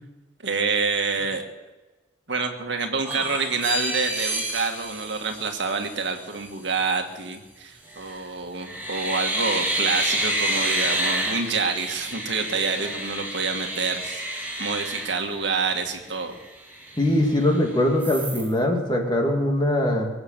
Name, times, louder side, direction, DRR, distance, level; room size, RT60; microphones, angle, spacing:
voice 1, 0.4-1.4 2.3-16.4, right 4 dB, 70° right, 4 dB, 1.8 m, -27 dB
sound 1, 3.0-6.1 7.9-8.2 8.6-15.9 16.3-16.4 16.7-17.6 18.0-18.5, right 1 dB, 10° right, 2.8 m, -29 dB
voice 2, 17.0-20.1, left 1 dB, 25° left, 1 dB, 2.4 m, -22 dB
23.0 x 8.0 x 7.5 m, 1.2 s
head